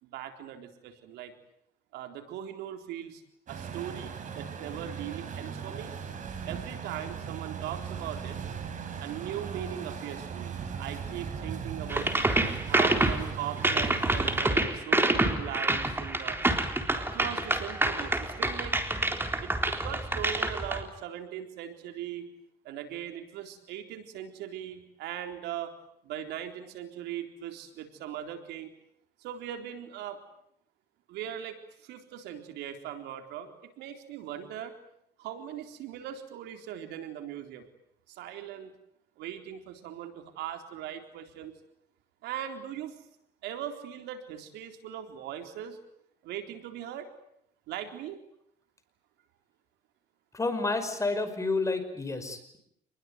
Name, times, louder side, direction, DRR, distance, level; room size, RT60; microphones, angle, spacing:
voice 1, 0.0-1.3 1.9-3.2 3.5-5.9 6.5-8.4 9.0-12.1 12.7-16.4 17.0-18.7 19.4-22.3 22.6-25.7 26.0-28.7 29.2-30.2 31.1-34.7 35.2-37.7 38.1-38.7 39.2-41.5 42.2-42.9 43.4-45.8 46.2-47.1 47.7-48.2, right 10 dB, 85° right, 6 dB, 3.9 m, -39 dB
Truck, 3.5-14.5, right 7 dB, 50° right, 6.2 m, -38 dB
sound 1, 11.9-20.8, right 2 dB, 15° right, 3.8 m, -27 dB
voice 2, 50.3-52.6, left 3 dB, 20° left, 9 dB, 5.4 m, -30 dB
27.5 x 21.0 x 9.4 m, 0.73 s
cardioid pair, 110°, 17 cm